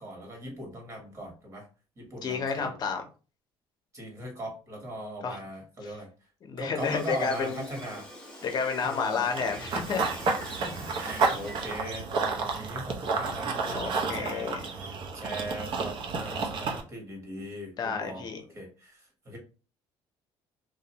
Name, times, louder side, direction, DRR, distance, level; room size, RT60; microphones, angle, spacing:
voice 1, 0.0-1.6 2.0-2.7 3.9-6.1 6.6-8.1 8.8-9.3 10.5-18.3 18.5-19.4, right 1 dB, 30° right, 1.1 m, -39 dB
voice 2, 2.2-3.0 5.2-5.4 5.8-6.0 6.4-7.7 8.4-10.3 13.7-14.6 17.8-18.4, left 5 dB, 45° left, 0.6 m, -31 dB
Gull seagull, 6.8-11.8, left 1 dB, 10° left, 0.8 m, -45 dB
Run / Bird vocalization bird call bird song, 9.4-16.8, right 4 dB, 55° right, 0.6 m, -31 dB
2.5 x 2.1 x 2.8 m
cardioid pair, 115°, 10 cm